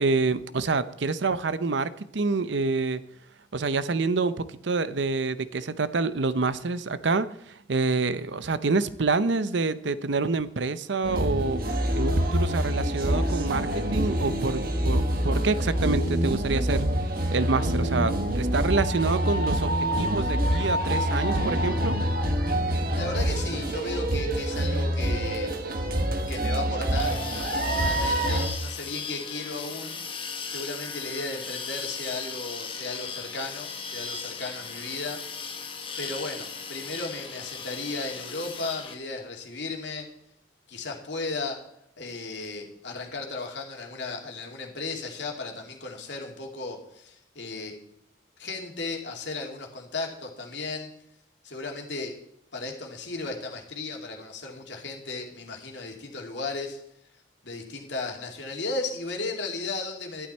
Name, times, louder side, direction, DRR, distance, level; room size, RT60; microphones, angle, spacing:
voice 1, 0.0-3.0 3.5-11.6 12.0-16.9 17.3-22.0, right 3 dB, 70° right, 14 dB, 0.7 m, -27 dB
sound 1, 11.0-28.5, right 1 dB, 50° right, 1.5 m, -26 dB
voice 2, 22.9-25.5 26.3-27.2 27.5-30.0 30.5-35.2 36.0-40.1 40.7-41.7 42.0-47.7 48.4-50.9 51.4-52.1 52.5-56.8 57.4-60.3, left 3 dB, 65° left, 1 dB, 2.5 m, -35 dB
sound 2, 26.9-38.9, left 5 dB, 25° left, 1.1 m, -37 dB
11.5 x 11.5 x 4.3 m, 0.79 s
head